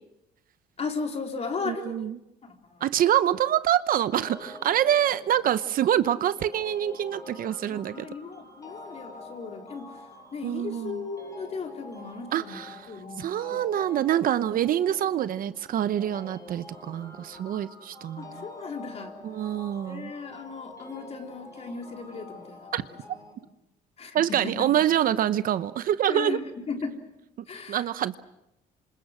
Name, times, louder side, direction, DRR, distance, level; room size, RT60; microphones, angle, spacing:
voice 1, 0.8-2.1 2.4-2.8 7.7-9.9 10.3-12.6 12.9-13.7 18.2-19.2 19.9-23.0 24.0-24.7 26.1-27.0 27.5-27.8, left 4 dB, 40° left, 3.8 m, -36 dB
voice 2, 1.6-2.2 2.8-8.1 10.4-11.1 12.3-18.5 19.2-20.1 22.7-22.8 24.1-26.4 27.7-28.2, right 11 dB, 60° right, 0.9 m, -26 dB
sound 1, 4.1-23.3, left 2 dB, 20° left, 6.9 m, -46 dB
27.5 x 26.5 x 6.3 m
cardioid pair, 110°, 17 cm